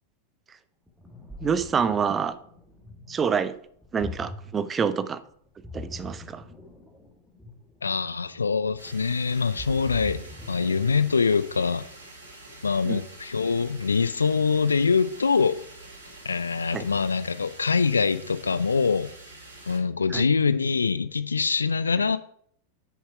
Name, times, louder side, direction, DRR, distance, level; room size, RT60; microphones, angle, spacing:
Ocean, 0.9-11.6, left 2 dB, ahead, 1.8 m, -43 dB
voice 1, 1.4-2.3 3.1-3.6 3.9-5.2 5.7-6.4 12.8-13.0 16.7-16.9 20.1-20.3, right 6 dB, 20° right, 14 dB, 0.6 m, -27 dB
voice 2, 7.8-11.9 12.6-15.6 16.2-19.1 19.7-22.2, left 5 dB, 75° left, 14 dB, 0.4 m, -24 dB
sound 1, 8.8-19.8, right 2 dB, 65° right, 4.0 m, -46 dB
7.4 x 7.0 x 4.8 m, 0.65 s
figure-of-eight pair, 90°, 0 cm